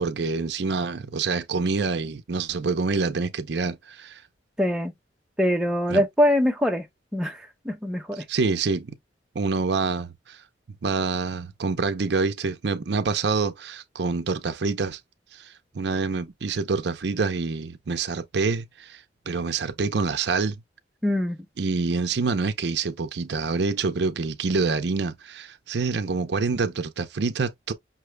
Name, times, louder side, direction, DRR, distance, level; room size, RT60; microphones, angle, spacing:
voice 1, 0.0-4.2 5.9-6.0 8.3-9.0 9.3-10.4 10.8-15.0 15.3-20.6 21.6-27.7, right 4 dB, 70° right, 0.6 m, -26 dB
voice 2, 4.6-4.9 5.4-6.9 7.1-8.2 21.0-21.5, equal, 5° right, 0.7 m, -23 dB
5.8 x 2.2 x 3.1 m
head